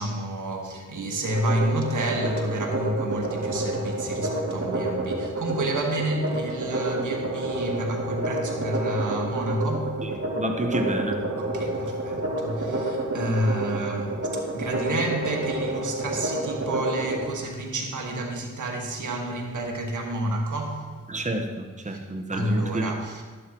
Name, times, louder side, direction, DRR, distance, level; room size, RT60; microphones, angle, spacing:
voice 1, 0.0-10.0 11.4-21.0 21.8-22.0 22.3-23.2, right 1 dB, 75° right, 1 dB, 1.8 m, -29 dB
sound 1, 1.2-17.2, right 2 dB, 50° right, 2.7 m, -29 dB
voice 2, 10.0-11.2 21.1-22.9, right 1 dB, 25° right, 4 dB, 1.3 m, -29 dB
13.0 x 11.5 x 3.1 m, 1.5 s
cardioid pair, 40°, 30 cm